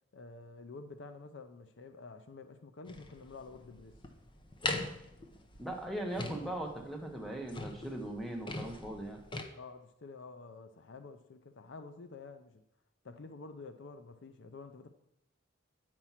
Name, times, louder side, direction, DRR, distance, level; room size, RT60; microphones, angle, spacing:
voice 1, 0.1-3.9 9.6-12.6 13.0-14.9, left 3 dB, 60° left, 0.6 m, -49 dB
sound 1, 2.9-9.4, left 2 dB, 25° left, 0.7 m, -41 dB
voice 2, 5.6-9.2, right 1 dB, ahead, 1.0 m, -39 dB
8.7 x 4.6 x 5.7 m
head